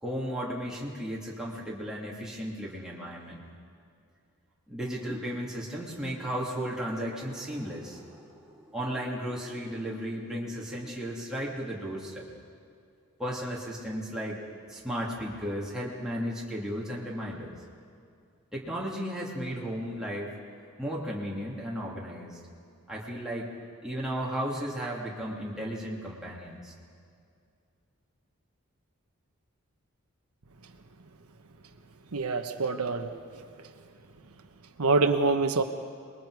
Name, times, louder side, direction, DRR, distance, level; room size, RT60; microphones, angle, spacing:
voice 1, 0.0-3.4 4.7-12.2 13.2-14.4 14.7-17.6 18.5-20.3 20.8-22.4 22.9-23.5 23.8-26.7, equal, 5° right, -5 dB, 2.4 m, -35 dB
voice 2, 32.1-33.4 34.8-35.6, right 3 dB, 85° right, 6 dB, 1.1 m, -26 dB
27.5 x 21.0 x 4.8 m, 2.4 s
head